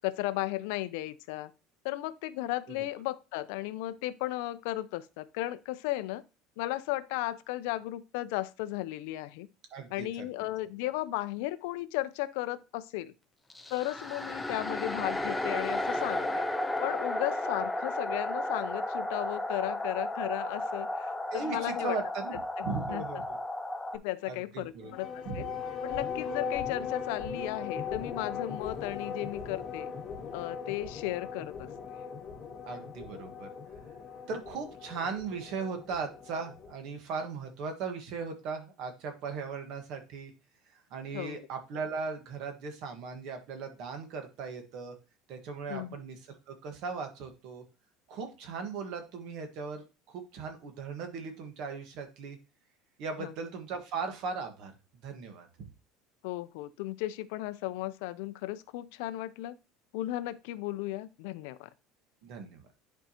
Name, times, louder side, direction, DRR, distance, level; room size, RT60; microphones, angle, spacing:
voice 1, 0.0-1.5 1.8-6.2 6.6-9.5 9.9-13.1 13.7-16.5 16.8-22.0 22.9-23.2 23.9-25.5 25.8-29.9 30.3-31.7 41.1-41.4 45.7-46.0 53.2-53.3 56.2-59.6 59.9-61.7, left 16 dB, 75° left, 0.5 m, -35 dB
voice 2, 9.7-10.2 21.3-23.4 24.3-24.9 25.2-25.4 32.7-33.5 34.3-40.3 40.9-44.9 45.3-46.2 46.5-47.6 48.1-52.4 53.0-54.7 55.0-55.7 62.2-62.7, right 5 dB, 50° right, 1.5 m, -38 dB
sound 1, 13.5-24.0, left 1 dB, 5° left, 0.5 m, -33 dB
sound 2, 24.8-36.7, left 6 dB, 25° left, 1.2 m, -39 dB
10.5 x 4.5 x 3.0 m
cardioid pair, 170°, 0 cm